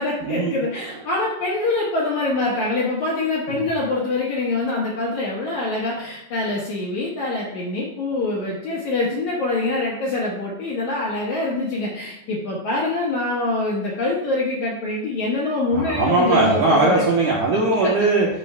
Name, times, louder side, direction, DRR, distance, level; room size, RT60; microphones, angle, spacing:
voice 1, 0.0-17.0 17.8-17.9, left 2 dB, 65° left, -5 dB, 1.9 m, -24 dB
voice 2, 15.7-18.3, right 2 dB, 70° right, -3 dB, 2.0 m, -19 dB
13.5 x 6.1 x 2.3 m, 0.85 s
omnidirectional pair, 5.2 m